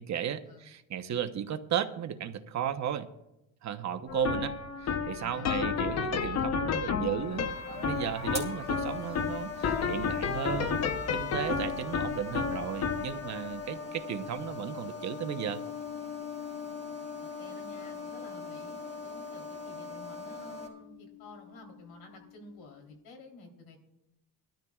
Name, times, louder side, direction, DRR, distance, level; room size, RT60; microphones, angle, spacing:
voice 1, 0.0-3.1 3.6-4.5 4.8-15.6, right 9 dB, 45° right, 8 dB, 0.9 m, -35 dB
sound 1, 4.1-21.3, left 6 dB, 45° left, 0.9 m, -34 dB
voice 2, 5.2-5.6 17.2-23.8, left 2 dB, 75° left, 3 dB, 3.5 m, -51 dB
sound 2, 7.1-20.7, left 3 dB, 20° left, 3.5 m, -42 dB
22.0 x 13.0 x 2.4 m, 0.90 s
cardioid pair, 125°, 37 cm